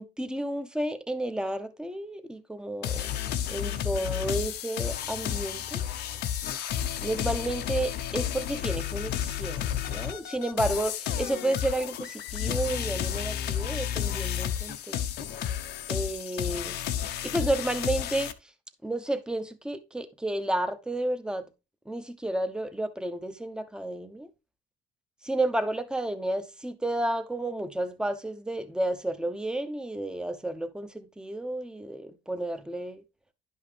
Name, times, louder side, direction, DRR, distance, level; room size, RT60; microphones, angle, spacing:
voice 1, 0.0-3.1 3.5-5.8 7.0-15.0 15.9-16.8 17.2-18.5 18.8-21.5 21.9-24.3 25.2-33.0, right 1 dB, 5° right, 0.8 m, -31 dB
sound 1, 2.8-18.3, left 10 dB, 75° left, 0.8 m, -32 dB
10.5 x 5.5 x 3.3 m
cardioid pair, 110°, 17 cm